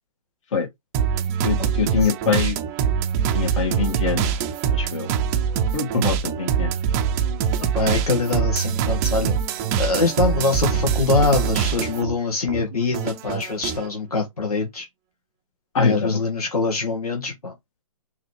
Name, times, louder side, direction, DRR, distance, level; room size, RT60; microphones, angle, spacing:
sound 1, 0.9-12.1 12.5-13.9, right 7 dB, 25° right, 0.5 m, -24 dB
voice 1, 1.4-2.6 3.3-4.3 4.7-5.1 5.7-6.7 15.7-16.1, left 5 dB, 55° left, 2.1 m, -23 dB
voice 2, 7.7-14.9 15.8-17.5, left 3 dB, 85° left, 1.2 m, -24 dB
3.9 x 2.9 x 3.2 m
hypercardioid pair, 130°, 19 cm